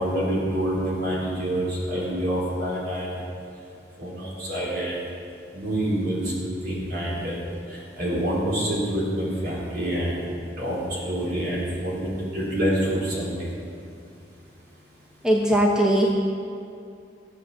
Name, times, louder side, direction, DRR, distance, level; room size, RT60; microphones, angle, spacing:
voice 1, 0.0-3.2 4.0-5.0 5.5-7.4 7.7-10.2 10.6-13.5, right 1 dB, 55° right, -5 dB, 4.1 m, -27 dB
voice 2, 15.2-16.1, right 1 dB, 5° right, -2 dB, 0.9 m, -19 dB
14.5 x 7.9 x 7.3 m, 2.5 s
head